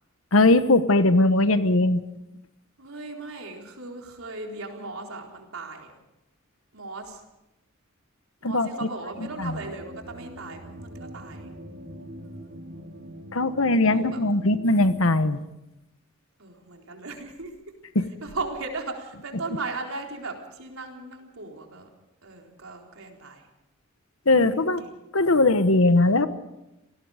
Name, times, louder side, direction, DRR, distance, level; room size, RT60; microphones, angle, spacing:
voice 1, 0.3-2.0 8.4-8.7 9.4-9.5 13.3-15.4 17.9-18.1 24.3-24.8 25.1-26.3, left 2 dB, 75° left, 11 dB, 1.2 m, -20 dB
voice 2, 2.8-6.0 6.7-7.2 8.4-11.5 13.9-14.2 16.4-17.5 18.2-21.9 22.2-23.5 24.4-24.9, right 3 dB, 85° right, 1 dB, 4.1 m, -37 dB
sound 1, 9.1-15.0, right 1 dB, 55° right, 3.8 m, -43 dB
28.0 x 19.0 x 5.1 m, 0.93 s
head